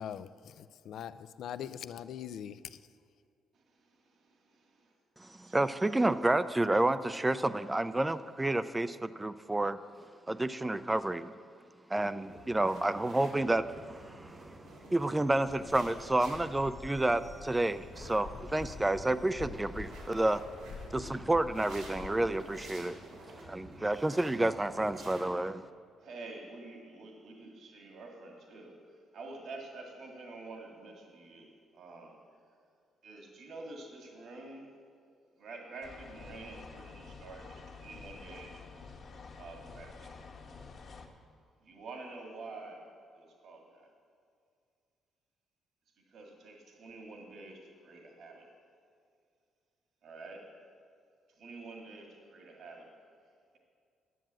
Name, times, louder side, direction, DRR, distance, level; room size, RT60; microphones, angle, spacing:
voice 1, 0.0-1.1 1.4-2.8, left 9 dB, 75° left, 14 dB, 0.4 m, -41 dB
voice 2, 3.5-4.9 5.4-5.6 23.2-23.5 23.7-23.8 26.0-28.8 29.1-32.2 33.0-34.7 35.4-38.9 39.4-40.1 41.6-42.9 43.1-43.9 46.1-48.5 50.0-50.5 51.3-52.9, right 3 dB, 65° right, 1 dB, 1.9 m, -48 dB
voice 3, 5.2-9.8 10.3-11.3 11.9-20.4 20.9-23.0 23.4-25.7, right 2 dB, 15° right, 14 dB, 0.4 m, -30 dB
sound 1, 12.3-25.3, right 1 dB, 90° right, 3.2 m, -51 dB
Waves surf, 15.4-22.8, left 4 dB, 90° left, 1.4 m, -48 dB
sound 2, 35.8-41.1, left 4 dB, 55° left, 1.5 m, -49 dB
11.0 x 7.8 x 7.5 m, 2.3 s
cardioid pair, 90°, 0 cm